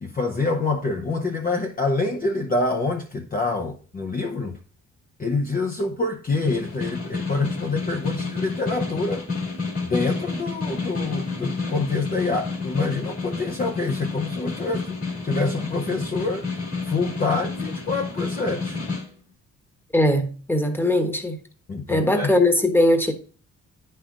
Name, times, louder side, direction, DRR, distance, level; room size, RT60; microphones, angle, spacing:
voice 1, 0.0-4.6 5.2-9.3 9.8-15.0 15.2-16.5 16.9-18.8 21.7-22.4, left 3 dB, 30° left, 0.8 m, -26 dB
Snare drum, 6.3-19.1, left 4 dB, 50° left, 2.6 m, -30 dB
voice 2, 19.9-21.4 21.9-23.1, left 1 dB, 5° left, 1.2 m, -20 dB
9.9 x 5.5 x 2.5 m
cardioid pair, 90°, 30 cm